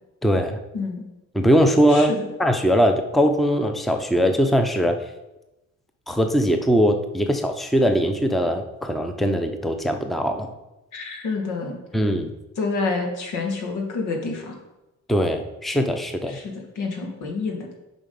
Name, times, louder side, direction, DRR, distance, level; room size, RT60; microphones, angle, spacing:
voice 1, 0.2-0.6 1.3-2.1 2.4-5.0 6.1-10.5 11.9-12.3 15.1-16.4, equal, ahead, 6 dB, 0.7 m, -21 dB
voice 2, 0.7-1.1 1.9-2.3 10.9-11.8 12.6-14.6 16.3-17.7, left 3 dB, 80° left, 2 dB, 1.8 m, -28 dB
7.2 x 5.0 x 5.3 m, 0.99 s
cardioid pair, 90°, 31 cm